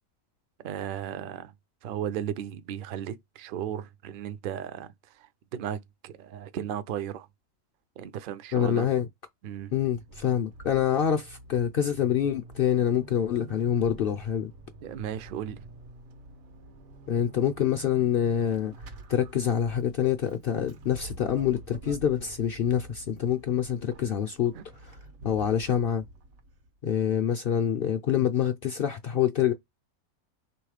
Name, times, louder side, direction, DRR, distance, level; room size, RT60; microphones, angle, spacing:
voice 1, 0.6-1.5 1.8-7.3 8.0-8.9 9.4-9.7 14.8-15.6 24.5-24.6, right 10 dB, 60° right, 0.5 m, -35 dB
voice 2, 8.5-9.1 9.7-14.5 17.1-18.7 19.1-24.6 24.8-26.0 26.8-29.5, left 9 dB, 65° left, 0.5 m, -26 dB
Vehicle / Accelerating revving vroom / Squeak, 9.6-26.8, right 2 dB, 80° right, 1.2 m, -48 dB
3.5 x 3.0 x 4.8 m
omnidirectional pair, 1.4 m